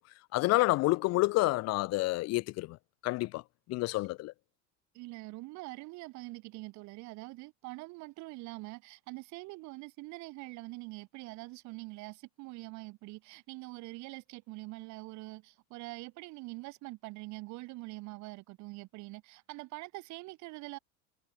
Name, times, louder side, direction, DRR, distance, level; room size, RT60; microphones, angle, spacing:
voice 1, 0.3-2.8 3.0-3.4 3.7-4.3, left 20 dB, 50° left, 0.9 m, -28 dB
voice 2, 4.9-20.8, right 23 dB, 60° right, 2.2 m, -44 dB
supercardioid pair, 130°, 33 cm